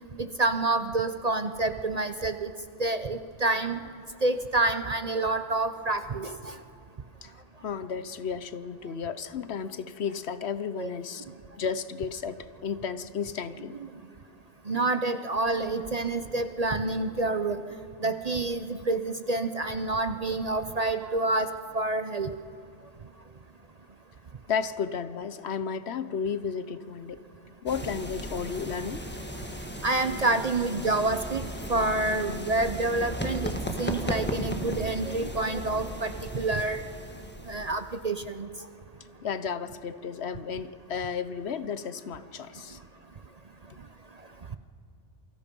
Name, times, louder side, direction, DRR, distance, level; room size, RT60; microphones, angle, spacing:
voice 1, 0.2-2.5 2.8-3.8 4.2-6.6 10.8-10.9 14.7-17.6 18.0-21.5 21.7-22.3 29.8-36.8 37.5-38.5, right 2 dB, 40° right, 9 dB, 0.7 m, -28 dB
voice 2, 7.6-11.2 11.6-13.8 24.5-27.2 27.6-29.1 39.2-42.8, left 6 dB, 65° left, 13 dB, 1.0 m, -33 dB
sound 1, 27.7-38.0, equal, 10° left, 1.4 m, -36 dB
28.0 x 24.0 x 5.4 m, 2.7 s
omnidirectional pair, 1.3 m